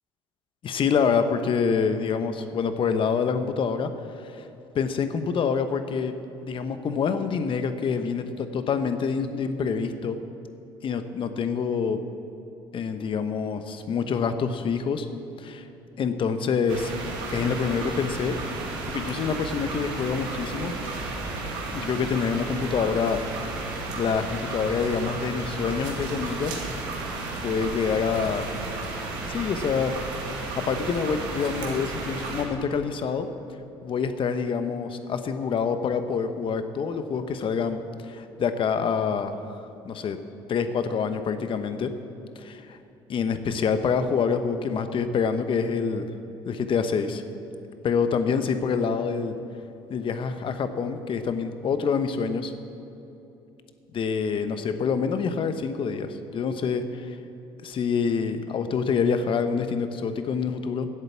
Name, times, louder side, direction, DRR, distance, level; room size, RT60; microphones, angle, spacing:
voice 1, 0.6-3.9 4.2-4.4 4.7-6.1 6.4-10.2 10.8-12.0 12.7-15.1 15.4-15.6 16.0-16.9 17.3-18.4 18.9-20.7 21.7-23.2 23.9-26.6 27.4-28.5 29.3-30.0 30.6-33.3 33.8-40.2 40.5-41.9 42.4-42.8 43.1-46.1 46.4-47.2 47.8-49.4 49.9-52.5 53.9-57.2 57.6-60.9, left 6 dB, 50° left, 9 dB, 1.0 m, -26 dB
sound 1, 16.7-32.4, right 2 dB, 85° right, 2.1 m, -33 dB
11.5 x 8.1 x 7.3 m, 3.0 s
supercardioid pair, 70°, 11 cm